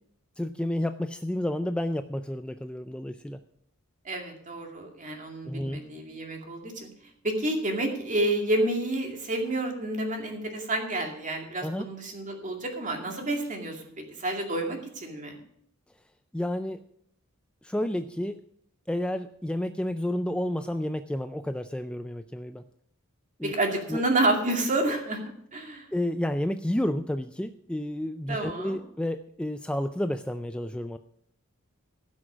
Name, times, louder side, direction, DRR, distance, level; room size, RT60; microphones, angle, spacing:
voice 1, 0.4-3.4 5.4-5.8 7.8-7.9 11.6-11.9 16.3-16.8 17.6-18.4 18.9-22.6 23.4-23.5 23.9-24.0 25.9-31.0, left 1 dB, 5° left, 8 dB, 0.3 m, -30 dB
voice 2, 4.0-6.9 7.2-15.4 23.4-25.2 25.5-25.9 28.3-28.8, right 1 dB, 35° right, 2 dB, 2.3 m, -29 dB
16.0 x 6.2 x 6.2 m, 0.69 s
head